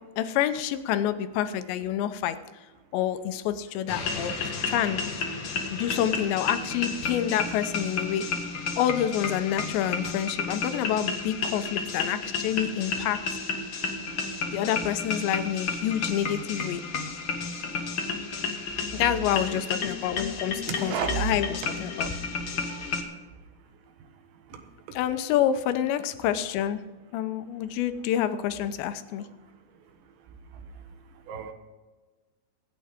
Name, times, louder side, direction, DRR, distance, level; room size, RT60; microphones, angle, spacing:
voice 1, 0.2-2.4 2.9-5.0 5.7-8.3 8.8-13.2 14.5-16.8 18.9-22.1 24.9-26.8 27.1-29.3, left 10 dB, 85° left, 10 dB, 3.1 m, -28 dB
sound 1, 3.9-23.0, left 4 dB, 60° left, 1.5 m, -32 dB
voice 2, 20.7-21.1 22.7-22.8 31.3-31.5, right 7 dB, 85° right, 6 dB, 3.6 m, -32 dB
24.5 x 8.4 x 3.6 m, 1.3 s
omnidirectional pair, 5.0 m